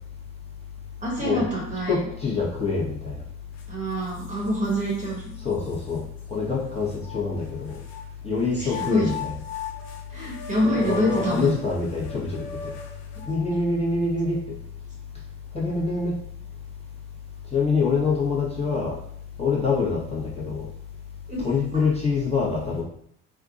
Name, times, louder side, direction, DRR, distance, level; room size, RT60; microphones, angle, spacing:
voice 1, 1.0-2.0 3.7-5.4 8.6-9.1 10.1-11.6 13.1-13.2 21.3-21.4 21.7-21.8, equal, 20° right, -4 dB, 1.3 m, -26 dB
voice 2, 1.9-3.2 5.4-7.8 8.2-9.3 10.6-12.7 13.3-14.6 15.5-16.1 17.5-19.0 19.4-20.7 21.4-22.8, left 4 dB, 15° left, -6 dB, 1.3 m, -25 dB
sound 1, 3.6-3.7 4.2-5.1 5.7-5.8 6.9-8.0 8.6-13.5, left 4 dB, 80° left, 0.6 m, -37 dB
3.6 x 2.5 x 2.5 m, 0.69 s
hypercardioid pair, 60°, 39 cm